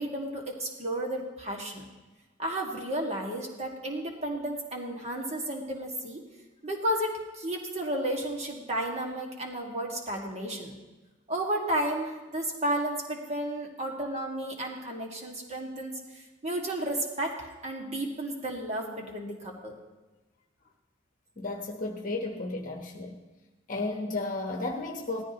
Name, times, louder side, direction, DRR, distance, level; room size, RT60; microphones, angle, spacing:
voice 1, 0.0-1.9 2.4-6.2 6.6-10.8 11.3-19.8, right 1 dB, 35° right, 0 dB, 1.9 m, -33 dB
voice 2, 21.4-23.2 23.7-25.2, left 2 dB, 40° left, 2 dB, 1.2 m, -33 dB
18.5 x 14.0 x 3.0 m, 1.2 s
head